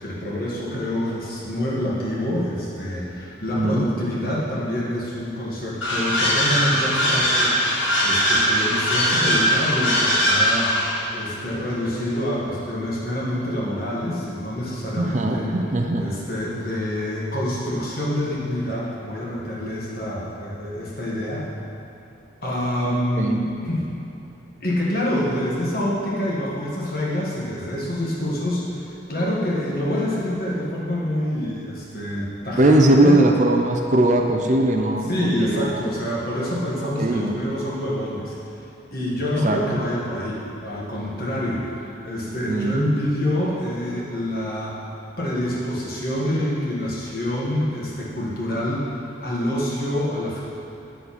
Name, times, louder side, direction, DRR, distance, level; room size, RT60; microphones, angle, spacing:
voice 1, 0.0-15.5 16.0-21.5 22.4-23.9 24.6-28.6 29.1-33.2 35.1-38.4 38.9-44.8 45.2-50.4, left 1 dB, 50° left, -5 dB, 1.7 m, -26 dB
sound 1, 5.8-11.0, equal, 90° left, 1.9 m, -20 dB
voice 2, 15.0-16.1 23.2-23.4 32.6-35.8 36.8-37.4 39.4-39.8 42.5-42.8, right 1 dB, 40° right, 3 dB, 0.5 m, -20 dB
8.5 x 6.8 x 4.3 m, 2.8 s
head